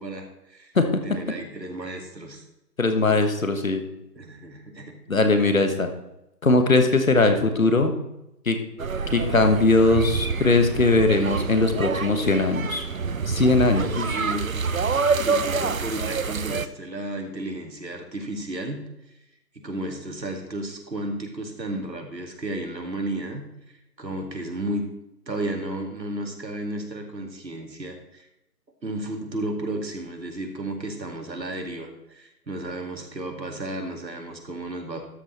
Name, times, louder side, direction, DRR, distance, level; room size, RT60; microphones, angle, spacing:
voice 1, 0.0-0.7 1.0-2.4 4.2-4.9 13.8-14.5 15.2-18.8 19.5-23.4 24.0-24.9 25.3-28.3 28.8-35.0, right 1 dB, 90° right, 3 dB, 2.3 m, -33 dB
voice 2, 2.8-3.8 5.1-5.9 6.4-7.9 8.4-8.6 9.1-12.9 13.3-14.2, left 3 dB, 55° left, 6 dB, 1.3 m, -20 dB
sound 1, 8.8-16.7, right 5 dB, 55° right, 0.6 m, -27 dB
13.0 x 6.4 x 4.2 m, 0.87 s
figure-of-eight pair, 170°, 49 cm